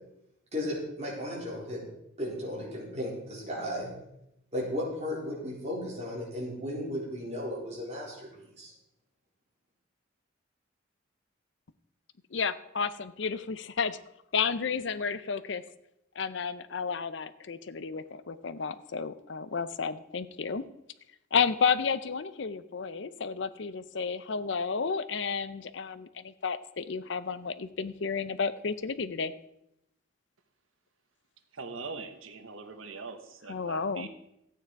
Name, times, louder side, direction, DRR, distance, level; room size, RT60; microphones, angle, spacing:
voice 1, 0.5-1.9 2.2-3.9 4.5-8.3 8.6-8.7, left 1 dB, 35° right, -4 dB, 3.8 m, -35 dB
voice 2, 12.3-14.0 14.3-15.6 16.2-20.6 21.3-29.3 33.5-34.1, left 5 dB, 60° left, 14 dB, 0.6 m, -31 dB
voice 3, 31.5-34.1, right 4 dB, 80° right, 8 dB, 1.1 m, -42 dB
13.0 x 9.1 x 4.7 m, 0.82 s
head